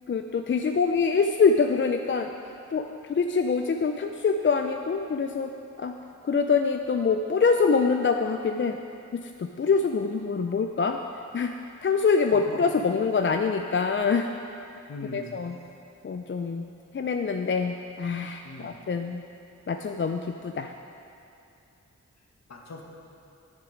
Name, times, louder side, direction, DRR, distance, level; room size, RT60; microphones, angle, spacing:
voice 1, 0.1-2.3 2.7-5.5 5.8-5.9 6.2-8.8 9.1-11.0 11.3-11.5 11.8-14.3 15.1-15.6 16.0-16.7 16.9-19.2 19.7-20.7, left 5 dB, 40° left, 5 dB, 0.4 m, -25 dB
voice 2, 12.3-12.7 14.9-15.3 18.4-18.8 22.5-22.8, left 2 dB, 60° left, 0 dB, 1.2 m, -41 dB
9.6 x 6.9 x 5.0 m, 2.7 s
cardioid pair, 55°, 30 cm